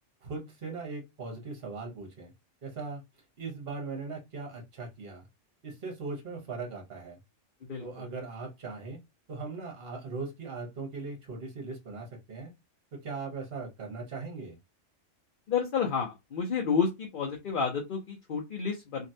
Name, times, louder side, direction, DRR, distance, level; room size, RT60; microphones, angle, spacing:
voice 1, 0.2-2.3 2.6-3.0 3.4-5.3 5.6-7.2 7.8-9.0 9.3-12.5 13.0-14.6, right 4 dB, 50° right, 1.3 m, -39 dB
voice 2, 7.6-8.1 15.5-19.1, left 6 dB, 50° left, 0.8 m, -30 dB
3.1 x 2.6 x 2.6 m
omnidirectional pair, 1.3 m